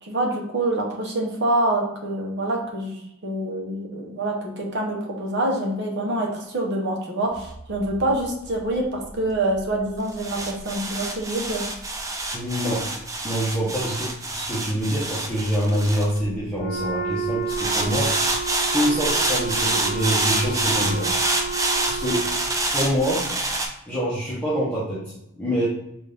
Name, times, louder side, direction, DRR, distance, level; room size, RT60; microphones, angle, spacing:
voice 1, 0.0-11.6 13.8-14.0, right 1 dB, 50° right, 1 dB, 0.8 m, -26 dB
sound 1, 7.4-16.8 17.5-23.7, right 2 dB, 15° right, 0.3 m, -27 dB
voice 2, 12.3-12.9 13.2-14.0 14.3-18.4 18.7-21.1 21.9-22.3 22.7-23.3 23.9-25.7, equal, 5° left, -10 dB, 0.8 m, -25 dB
Wind instrument woodwind instrument, 16.5-22.6, right 4 dB, 40° left, 0.8 m, -31 dB
4.0 x 2.5 x 3.4 m, 0.84 s
head